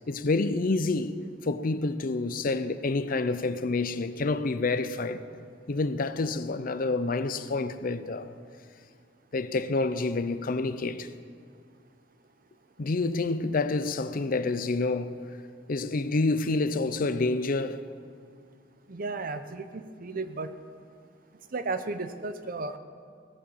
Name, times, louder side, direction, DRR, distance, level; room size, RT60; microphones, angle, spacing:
voice 1, 0.1-1.2 1.4-5.2 5.7-8.3 9.3-11.1 12.8-15.2 15.7-17.8, left 3 dB, 50° left, 0.6 m, -28 dB
voice 2, 18.9-20.5 21.5-22.8, right 3 dB, 50° right, 0.7 m, -34 dB
17.0 x 8.8 x 7.1 m
head